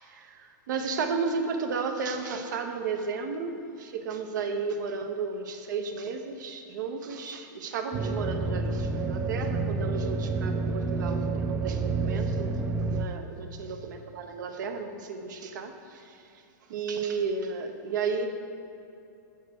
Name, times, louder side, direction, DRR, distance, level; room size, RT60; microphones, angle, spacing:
voice 1, 0.0-12.6 13.0-16.4 16.7-18.3, right 5 dB, 75° right, 6 dB, 0.8 m, -33 dB
sound 1, 7.9-13.1, right 3 dB, 20° right, 0.3 m, -29 dB
8.0 x 4.6 x 6.4 m, 2.8 s
supercardioid pair, 145°, 10 cm